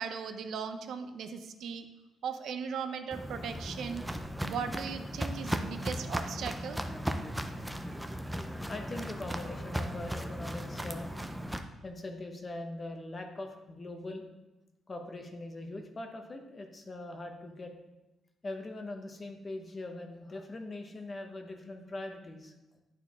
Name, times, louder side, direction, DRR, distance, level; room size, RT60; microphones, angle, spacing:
voice 1, 0.0-1.9 2.2-4.0 4.4-6.8, right 6 dB, 70° right, 8 dB, 0.5 m, -38 dB
Walk footsteps, 3.1-11.6, equal, 5° right, 0.4 m, -37 dB
voice 2, 6.8-7.7 8.5-11.1 11.8-14.2 14.9-17.7 18.4-22.5, left 2 dB, 25° left, 4 dB, 0.8 m, -42 dB
10.5 x 4.5 x 3.5 m, 1.0 s
cardioid pair, 155°, 0 cm